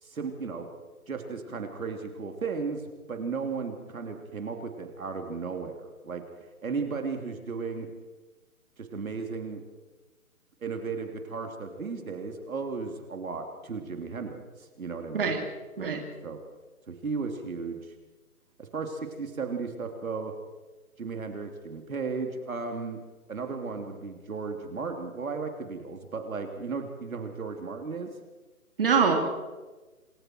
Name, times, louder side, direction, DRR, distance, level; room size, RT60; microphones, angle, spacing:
voice 1, 0.0-0.7 1.1-6.2 6.6-7.9 8.8-9.6 10.6-15.3 15.8-15.9 16.2-16.4 16.9-17.9 18.6-20.3 21.0-23.0 23.3-28.1, right 4 dB, 65° right, 4 dB, 3.2 m, -35 dB
voice 2, 28.8-29.1, right 6 dB, 40° right, 2 dB, 3.0 m, -23 dB
27.5 x 21.5 x 4.6 m, 1.2 s
hypercardioid pair, 175°, 44 cm